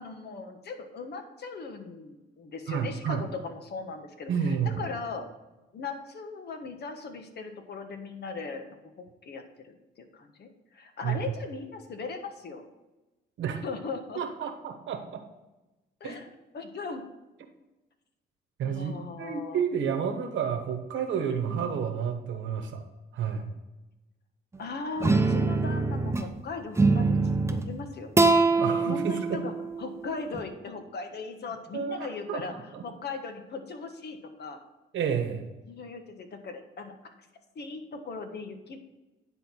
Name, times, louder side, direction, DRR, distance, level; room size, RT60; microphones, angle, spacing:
voice 1, 0.0-5.3 5.7-8.6 9.0-12.6 13.6-14.2 16.0-16.3 16.5-17.1 18.6-19.6 21.5-21.9 24.6-27.3 27.6-28.1 28.5-29.5 29.8-32.5 32.8-34.6 35.7-36.9 37.5-38.8, left 4 dB, 55° left, 6 dB, 1.3 m, -38 dB
voice 2, 2.7-3.2 4.3-4.8 11.0-11.1 13.4-13.6 14.2-15.2 16.0-16.2 18.6-18.9 19.2-22.8 23.1-23.5 28.6-29.4 31.7-32.0 32.3-32.8 34.9-35.5, right 7 dB, 70° right, 5 dB, 1.2 m, -30 dB
sound 1, 25.0-26.3 26.8-27.7 28.2-30.4, right 3 dB, 15° right, 0.7 m, -24 dB
9.9 x 4.0 x 5.8 m, 1.0 s
cardioid pair, 90°, 20 cm